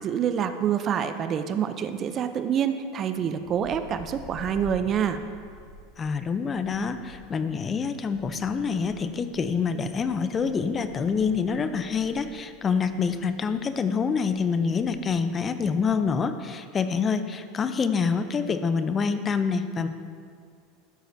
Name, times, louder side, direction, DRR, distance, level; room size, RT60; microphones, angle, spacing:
voice 1, 0.0-5.2, right 8 dB, 40° right, 10 dB, 0.5 m, -27 dB
sound 1, 3.4-15.3, left 2 dB, 85° left, 1.5 m, -49 dB
voice 2, 6.0-19.9, left 5 dB, 30° left, 10 dB, 0.6 m, -26 dB
12.5 x 7.9 x 2.7 m, 2.1 s
hypercardioid pair, 95°, 0 cm